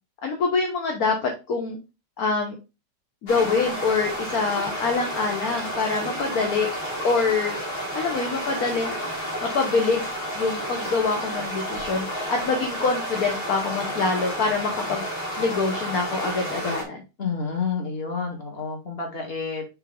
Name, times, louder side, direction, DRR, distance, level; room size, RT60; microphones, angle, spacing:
voice 1, 0.2-1.8 2.2-2.6 3.2-6.7 7.0-7.6 7.9-8.9 9.4-10.0 10.3-15.0 15.4-17.0, left 4 dB, 55° left, 2 dB, 1.4 m, -25 dB
sound 1, 3.3-16.8, equal, 85° left, 3.1 m, -31 dB
voice 2, 17.2-19.7, left 5 dB, 30° left, 1 dB, 2.0 m, -29 dB
5.8 x 4.5 x 3.6 m, 0.27 s
omnidirectional pair, 2.2 m